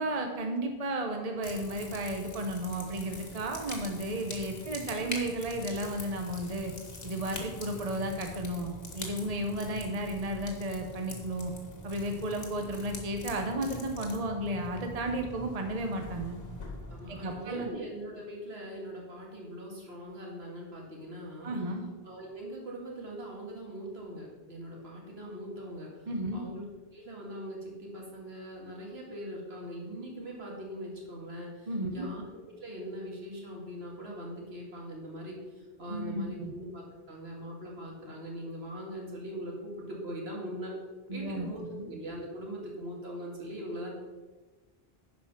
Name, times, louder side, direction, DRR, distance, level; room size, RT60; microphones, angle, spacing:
voice 1, 0.0-6.7 7.0-11.5 11.8-16.4 17.1-17.7 21.4-21.8 26.1-26.4 31.7-32.1 35.9-36.5 41.1-41.9, right 1 dB, 40° right, 3 dB, 1.0 m, -33 dB
sound 1, 1.4-17.7, left 2 dB, 65° left, 1.8 m, -44 dB
voice 2, 16.9-21.6 22.0-26.7 26.9-40.8 41.1-41.6 41.9-43.9, equal, 75° right, -2 dB, 2.4 m, -41 dB
11.0 x 5.0 x 6.0 m, 1.3 s
omnidirectional pair, 1.1 m